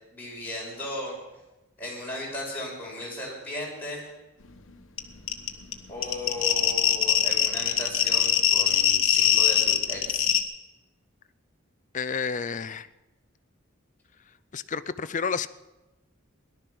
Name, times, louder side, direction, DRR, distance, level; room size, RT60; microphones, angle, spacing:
voice 1, 0.1-1.2 1.8-4.1 5.9-10.3, left 1 dB, 10° left, -5 dB, 5.6 m, -36 dB
sound 1, 5.0-5.1 5.3-10.4, left 10 dB, 65° left, 1.2 m, -22 dB
voice 2, 11.9-12.9 14.5-15.5, left 5 dB, 35° left, 15 dB, 0.5 m, -30 dB
18.0 x 11.5 x 6.0 m, 1.0 s
head